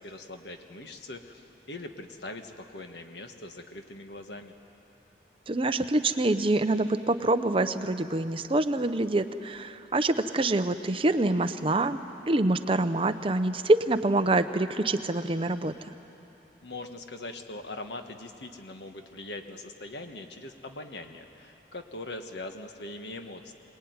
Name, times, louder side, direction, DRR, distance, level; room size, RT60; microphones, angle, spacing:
voice 1, 0.0-4.5 16.6-23.5, left 2 dB, 75° left, 6 dB, 1.5 m, -41 dB
voice 2, 5.5-12.0 12.3-15.7, right 2 dB, 30° right, 10 dB, 0.7 m, -26 dB
24.0 x 20.0 x 9.6 m, 2.9 s
head